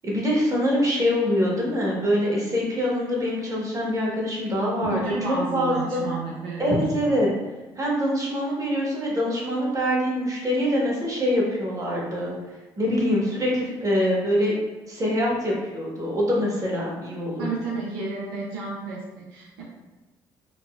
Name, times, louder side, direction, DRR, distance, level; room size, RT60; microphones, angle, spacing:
voice 1, 0.0-5.0 5.5-6.0 6.6-7.3 7.8-12.3 12.8-14.5 14.9-17.5, equal, 30° right, -4 dB, 1.2 m, -24 dB
voice 2, 4.9-7.1 17.4-19.6, right 3 dB, 85° right, -5 dB, 0.6 m, -32 dB
4.0 x 2.1 x 2.3 m, 1.2 s
hypercardioid pair, 55°, 10 cm